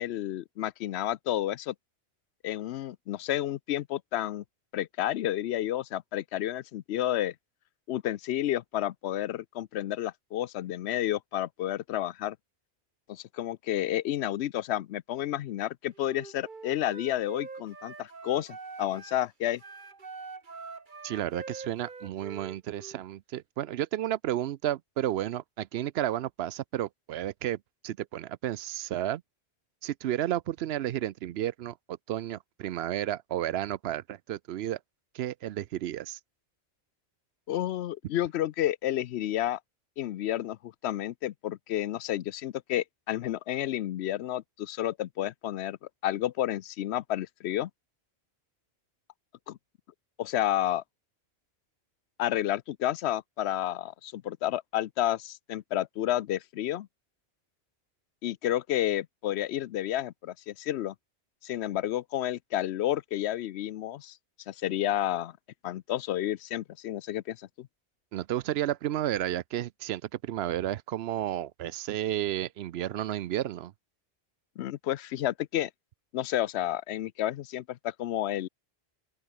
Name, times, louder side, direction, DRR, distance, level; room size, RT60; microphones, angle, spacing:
voice 1, 0.0-1.7 2.4-4.4 4.7-7.3 7.9-12.4 13.1-19.6 37.5-39.6 40.0-45.8 46.0-47.7 49.5-49.6 50.2-50.8 52.2-56.9 58.2-60.9 61.4-64.2 64.5-65.3 65.6-67.7 74.6-75.7 76.1-78.5, left 13 dB, 85° left, 0.8 m, -31 dB
Wind instrument woodwind instrument, 15.9-19.2 19.6-23.0, right 4 dB, 50° right, 1.7 m, -44 dB
voice 2, 21.0-27.6 27.8-29.2 29.8-34.8 35.1-36.2 68.1-73.7, right 12 dB, 75° right, 0.8 m, -32 dB
open air
omnidirectional pair, 1.1 m